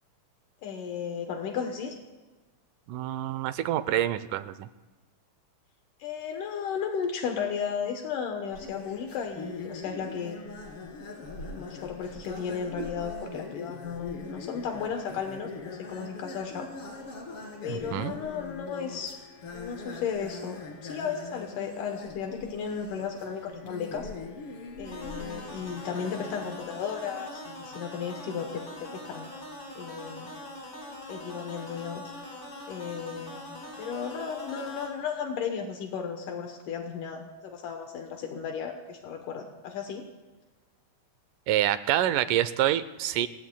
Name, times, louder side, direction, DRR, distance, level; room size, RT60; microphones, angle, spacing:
voice 1, 0.6-2.0 6.0-10.4 11.5-16.7 17.6-19.2 19.5-24.1 24.8-29.3 29.8-30.3 31.1-32.0 32.7-40.0, left 7 dB, 75° left, 4 dB, 2.6 m, -34 dB
voice 2, 2.9-4.7 12.8-12.9 17.7-18.1 41.5-43.3, right 12 dB, 80° right, 14 dB, 2.2 m, -27 dB
sound 1, 8.5-26.6, left 4 dB, 45° left, 3.0 m, -42 dB
sound 2, 24.8-34.9, left 1 dB, 25° left, 4.7 m, -42 dB
29.0 x 15.5 x 2.3 m, 1.2 s
omnidirectional pair, 3.8 m